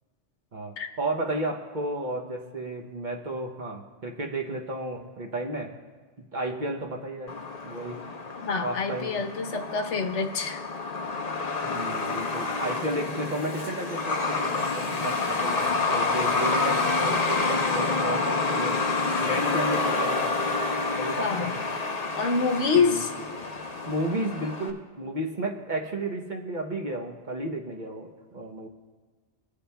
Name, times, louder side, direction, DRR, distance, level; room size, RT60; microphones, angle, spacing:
voice 1, 0.5-5.7 6.2-7.3 7.6-8.0 8.6-9.2 11.6-18.8 19.2-20.3 20.9-21.7 22.8-23.0 23.9-28.7, right 1 dB, 45° right, 1 dB, 0.9 m, -33 dB
Truck, 7.3-24.7, left 3 dB, 40° left, 0.8 m, -28 dB
voice 2, 8.4-10.6 11.7-11.8 21.2-21.4 22.2-23.1, left 4 dB, 85° left, 4 dB, 1.1 m, -26 dB
21.5 x 8.3 x 2.2 m, 1.4 s
omnidirectional pair, 1.2 m